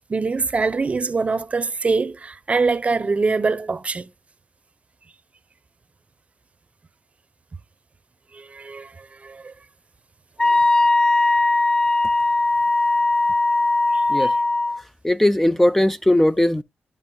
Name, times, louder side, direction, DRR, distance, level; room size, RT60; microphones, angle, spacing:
voice 1, 0.1-4.1 8.3-9.5 10.4-10.5 13.9-14.3, right 4 dB, 35° right, 0.7 m, -24 dB
Wind instrument woodwind instrument, 10.4-14.8, left 2 dB, 25° left, 1.4 m, -19 dB
voice 2, 15.0-16.6, left 1 dB, 5° left, 0.3 m, -18 dB
11.5 x 5.3 x 2.2 m
cardioid pair, 75°, 4 cm